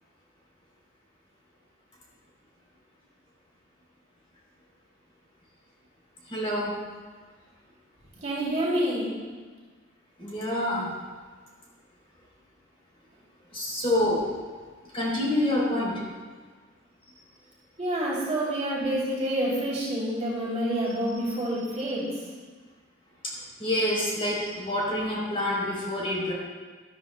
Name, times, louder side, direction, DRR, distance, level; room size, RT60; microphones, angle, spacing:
voice 1, 6.3-6.7 10.2-10.9 13.5-14.2 14.9-16.0 23.6-26.3, left 1 dB, 30° left, -5 dB, 3.2 m, -27 dB
voice 2, 8.1-9.2 17.8-22.2, right 1 dB, 35° right, -6 dB, 2.9 m, -28 dB
13.0 x 12.5 x 2.2 m, 1.4 s
head